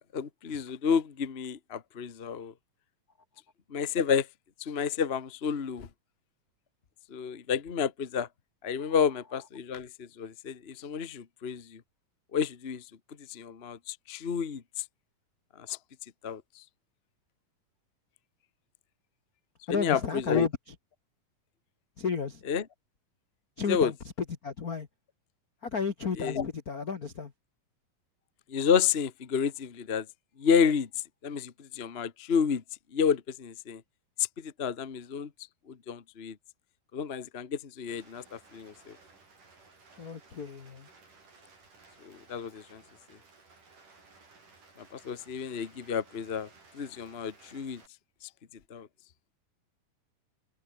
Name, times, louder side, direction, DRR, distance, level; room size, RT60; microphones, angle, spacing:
voice 1, 0.1-2.5 3.7-4.3 4.6-5.9 7.1-8.3 8.6-11.8 12.3-12.8 13.3-14.8 15.6-15.8 16.2-16.6 19.7-20.5 22.5-22.6 23.7-23.9 26.2-26.5 28.5-30.1 30.4-30.9 31.2-32.6 32.9-33.8 34.2-35.3 35.7-36.4 36.9-39.0 42.0-42.8 44.8-47.8 48.7-48.9, left 7 dB, 85° left, 0.5 m, -30 dB
voice 2, 19.7-20.7 22.0-22.4 23.6-23.9 24.4-24.9 25.6-27.3 40.0-40.9, left 5 dB, 45° left, 1.2 m, -32 dB
Rain, 37.9-47.9, right 4 dB, 65° right, 8.9 m, -58 dB
omnidirectional pair, 3.9 m